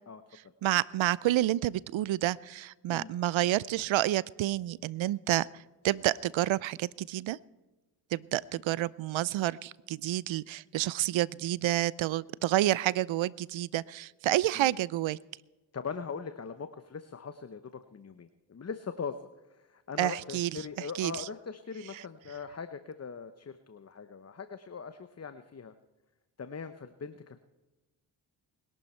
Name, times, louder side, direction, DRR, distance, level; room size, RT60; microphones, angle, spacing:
voice 1, 0.6-5.5 5.8-7.4 8.1-15.2 20.0-20.5 21.0-21.1, right 14 dB, 70° right, 22 dB, 0.6 m, -29 dB
voice 2, 15.7-25.7 26.4-27.4, left 5 dB, 30° left, 10 dB, 0.9 m, -41 dB
21.0 x 12.0 x 4.4 m, 1.1 s
supercardioid pair, 50°, 50 cm